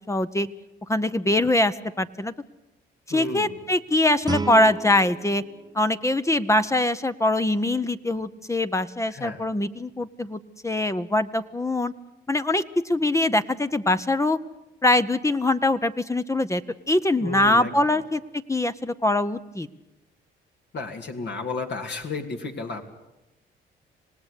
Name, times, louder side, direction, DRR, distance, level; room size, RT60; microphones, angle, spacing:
voice 1, 0.1-0.5 0.9-2.3 3.1-5.4 5.7-11.9 12.3-14.4 14.8-16.6 16.9-18.2 18.5-19.7, left 1 dB, 15° left, 11 dB, 0.8 m, -23 dB
voice 2, 3.1-3.6 9.1-9.4 17.2-18.0 20.7-22.8, left 3 dB, 60° left, 4 dB, 2.7 m, -33 dB
Guitar, 4.2-7.0, right 4 dB, 20° right, 1.0 m, -35 dB
26.5 x 18.5 x 8.3 m, 0.96 s
cardioid pair, 90°, 20 cm